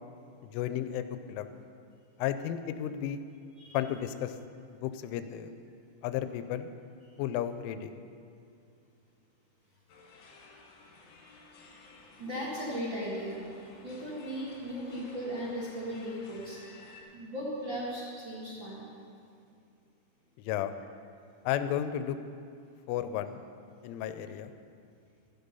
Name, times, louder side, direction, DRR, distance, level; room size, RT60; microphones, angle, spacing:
voice 1, 0.4-1.5 2.2-3.2 3.7-4.4 4.8-5.5 6.0-6.7 7.2-7.9 20.4-20.7 21.5-22.2 22.9-23.4 23.8-24.5, left 10 dB, 90° left, 10 dB, 3.1 m, -33 dB
sound 1, 9.9-17.0, left 3 dB, 65° left, 3.7 m, -55 dB
voice 2, 12.2-16.6 17.1-18.9, equal, 65° right, -7 dB, 1.1 m, -37 dB
12.0 x 12.0 x 5.5 m, 2.3 s
omnidirectional pair, 5.5 m